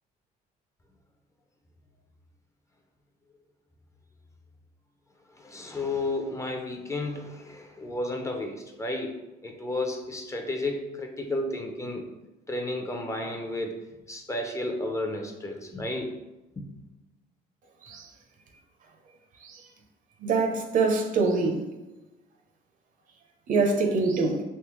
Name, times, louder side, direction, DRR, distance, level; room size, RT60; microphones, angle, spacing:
voice 1, 5.4-12.1 12.5-13.8 14.1-16.1 16.6-16.7, left 2 dB, 15° left, 3 dB, 0.5 m, -32 dB
voice 2, 20.2-21.6 23.5-24.4, right 3 dB, 50° right, 3 dB, 0.6 m, -24 dB
3.5 x 2.8 x 3.0 m, 1.0 s
cardioid pair, 110°, 17 cm